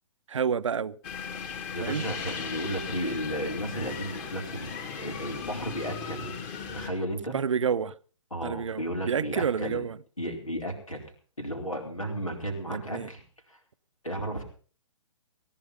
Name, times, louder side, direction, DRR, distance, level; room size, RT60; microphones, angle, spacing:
voice 1, 0.3-1.0 1.8-2.1 7.3-7.9 8.4-10.0 12.7-13.1, right 7 dB, 65° right, 0.6 m, -29 dB
sound 1, 1.0-6.9, left 6 dB, 30° left, 2.6 m, -37 dB
voice 2, 1.7-6.5 6.7-7.4 8.3-9.8 10.2-11.0 11.4-13.2 13.5-13.6 14.0-14.4, right 1 dB, 90° left, 4.5 m, -34 dB
18.0 x 10.5 x 5.4 m
figure-of-eight pair, 125°, 17 cm